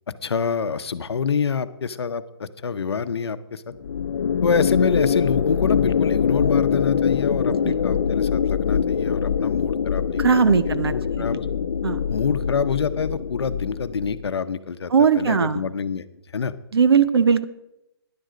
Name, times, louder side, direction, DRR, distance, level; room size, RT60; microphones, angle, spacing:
voice 1, 0.2-3.7 4.4-11.5 12.1-14.9 15.2-16.0 16.3-16.5, left 6 dB, 70° left, 12 dB, 0.8 m, -26 dB
sound 1, 3.8-14.3, left 7 dB, 55° left, 0.4 m, -23 dB
voice 2, 10.2-11.3 11.8-12.0 14.9-15.6 16.7-17.4, right 6 dB, 65° right, 13 dB, 0.8 m, -19 dB
10.5 x 9.1 x 5.0 m, 0.87 s
hypercardioid pair, 175°, 14 cm